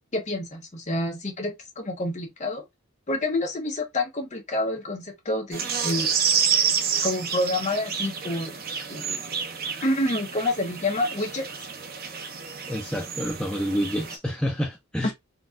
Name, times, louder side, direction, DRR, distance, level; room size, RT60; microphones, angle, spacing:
voice 1, 0.1-2.6 3.1-6.1 7.0-8.6 8.9-9.4 9.8-11.5 15.0-15.1, left 1 dB, 35° left, 0.9 m, -28 dB
sound 1, 5.5-14.2, right 7 dB, 45° right, 0.6 m, -29 dB
voice 2, 12.7-15.1, equal, 5° left, 0.5 m, -28 dB
3.9 x 2.3 x 2.4 m
head